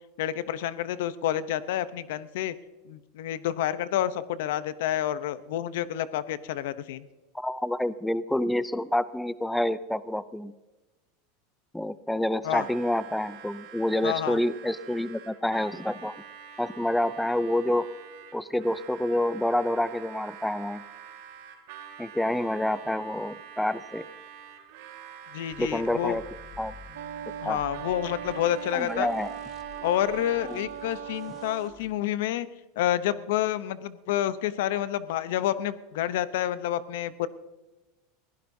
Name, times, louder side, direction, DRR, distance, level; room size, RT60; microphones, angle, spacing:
voice 1, 0.2-2.5 2.9-7.1 12.4-12.7 14.0-14.4 25.3-26.2 27.4-29.1 29.8-32.5 32.8-37.3, left 12 dB, 75° left, 15 dB, 0.7 m, -29 dB
voice 2, 7.3-10.5 11.7-16.1 16.6-17.9 18.3-20.8 22.0-24.0 25.6-26.2 26.6-26.7 27.4-27.6 28.7-29.3 30.5-30.6, left 1 dB, 5° left, 16 dB, 0.4 m, -28 dB
Harmonica, 12.4-30.7, right 8 dB, 70° right, 2.2 m, -47 dB
sound 1, 25.5-31.9, left 4 dB, 30° left, 1.3 m, -51 dB
Wind instrument woodwind instrument, 26.9-31.8, right 11 dB, 90° right, 0.5 m, -39 dB
21.5 x 16.5 x 2.7 m, 1.1 s
supercardioid pair, 135°, 0 cm